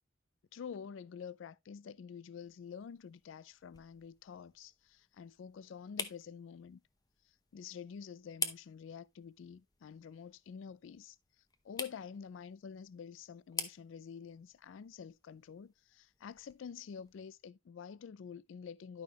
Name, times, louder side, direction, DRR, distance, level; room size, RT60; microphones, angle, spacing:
voice 1, 0.5-6.8 7.2-11.2 11.6-19.0, left 7 dB, 80° left, 0.4 m, -48 dB
sound 1, 2.4-17.2, left 5 dB, 20° left, 0.7 m, -48 dB
11.5 x 5.2 x 3.0 m
head